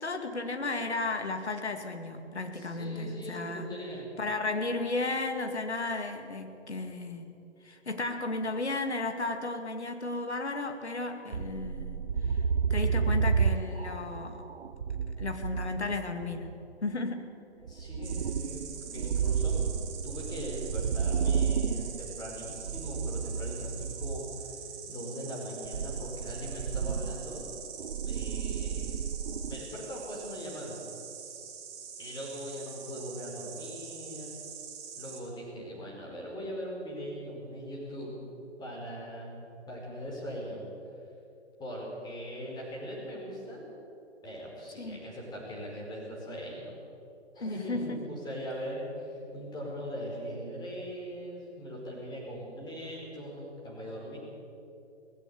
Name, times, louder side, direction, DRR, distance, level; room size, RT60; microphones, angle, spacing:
voice 1, 0.0-3.7 4.2-7.3 7.6-12.4 12.7-14.4 15.2-16.5 16.8-17.3 44.8-45.0 47.4-48.0, left 2 dB, 70° left, 6 dB, 2.3 m, -34 dB
voice 2, 2.5-4.0 17.7-18.6 18.9-19.8 20.0-24.5 24.9-27.5 28.0-29.0 29.4-30.8 32.0-34.4 35.0-38.1 38.6-39.4 39.7-40.7 41.6-43.7 44.2-46.8 47.3-54.2, equal, 10° left, -3 dB, 5.0 m, -40 dB
sound 1, 11.3-16.5 17.7-24.4 25.6-29.6, right 6 dB, 60° right, 0.8 m, -31 dB
Insect, 18.0-35.2, right 7 dB, 20° right, 2.4 m, -44 dB
19.0 x 15.5 x 8.6 m, 2.7 s
figure-of-eight pair, 130°, 34 cm